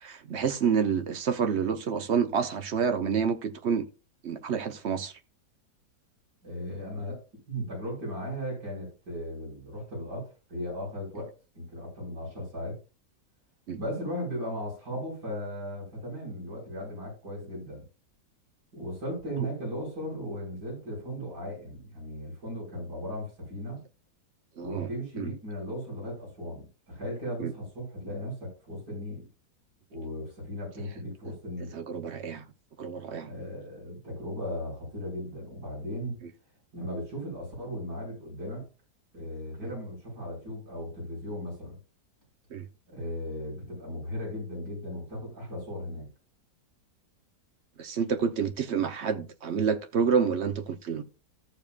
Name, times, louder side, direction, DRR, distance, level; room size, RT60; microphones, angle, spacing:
voice 1, 0.0-3.9 4.2-5.1 13.7-13.8 24.6-24.9 25.2-25.3 27.4-27.5 31.7-32.4 32.8-33.3 42.5-42.7 47.8-51.0, right 6 dB, 55° right, 0.8 m, -28 dB
voice 2, 6.4-7.2 7.5-12.8 13.7-17.9 18.7-23.8 24.6-29.3 29.9-31.7 33.2-36.2 36.7-38.6 39.1-41.8 42.9-46.1, equal, 80° right, 5.7 m, -37 dB
14.0 x 7.2 x 2.4 m
omnidirectional pair, 1.8 m